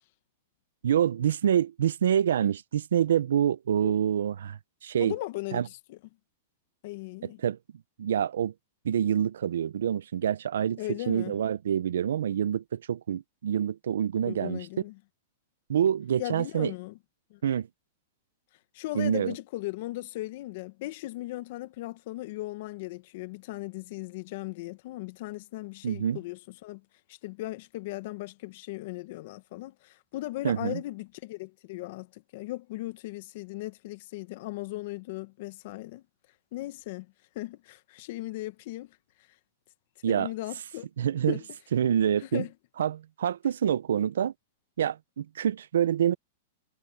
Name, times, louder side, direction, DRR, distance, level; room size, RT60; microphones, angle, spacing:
voice 1, 0.8-5.1 5.5-5.7 7.2-7.6 8.0-8.5 8.8-10.8 11.1-14.7 15.7-16.7 17.4-17.7 18.9-19.3 25.8-26.2 30.4-30.8 40.0-40.3 41.0-41.4 41.7-42.4 42.8-44.3 44.8-46.2, right 9 dB, 85° right, 0.6 m, -26 dB
voice 2, 5.0-6.0 6.8-7.4 10.8-11.4 14.2-15.0 16.2-17.0 17.3-17.4 18.7-26.8 27.2-36.0 36.5-37.1 37.3-38.9 40.0-40.9 41.3-41.5 42.2-42.5, left 18 dB, 50° left, 1.3 m, -37 dB
hypercardioid pair, 150°, 0 cm